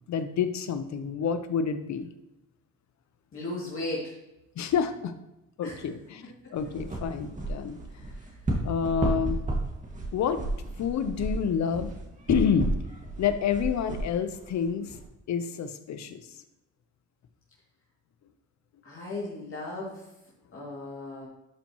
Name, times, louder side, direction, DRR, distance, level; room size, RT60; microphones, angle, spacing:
voice 1, 0.1-2.1 4.6-5.1 5.6-7.8 8.6-9.4 10.1-10.4 10.8-11.9 12.3-12.7 13.2-15.0 15.3-16.2, left 7 dB, 65° left, 9 dB, 0.9 m, -28 dB
voice 2, 3.3-4.1 5.6-5.8 8.1-8.2 18.8-20.0 20.5-21.3, left 2 dB, 45° left, -6 dB, 2.7 m, -36 dB
sound 1, 6.6-15.0, right 2 dB, 25° right, 2.0 m, -33 dB
12.0 x 5.3 x 3.1 m, 0.93 s
cardioid pair, 90°, 30 cm